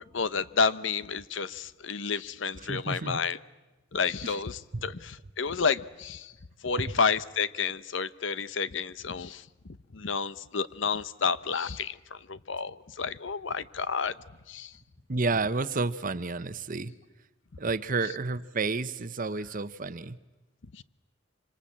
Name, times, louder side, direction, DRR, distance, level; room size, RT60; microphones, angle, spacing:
voice 1, 0.0-3.4 3.9-6.3 6.6-9.5 9.9-14.1 14.5-14.7 20.7-20.8, left 5 dB, 70° left, 16 dB, 0.8 m, -30 dB
voice 2, 2.6-3.2 4.2-4.4 15.1-16.9 17.6-20.2, right 3 dB, 45° right, 13 dB, 1.0 m, -30 dB
26.0 x 25.5 x 8.7 m, 1.1 s
head